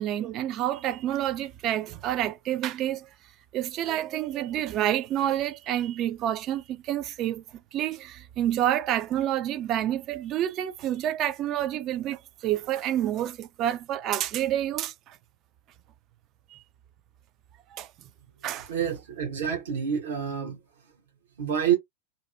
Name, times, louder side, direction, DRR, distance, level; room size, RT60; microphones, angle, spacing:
voice 1, 0.0-3.1 3.5-7.4 7.7-15.2 16.5-16.6 17.7-17.9 18.4-18.7, right 12 dB, 35° right, 0.3 m, -28 dB
voice 2, 18.7-20.6 21.4-21.7, right 8 dB, 60° right, 0.9 m, -27 dB
2.7 x 2.0 x 2.4 m
figure-of-eight pair, 90°, 0 cm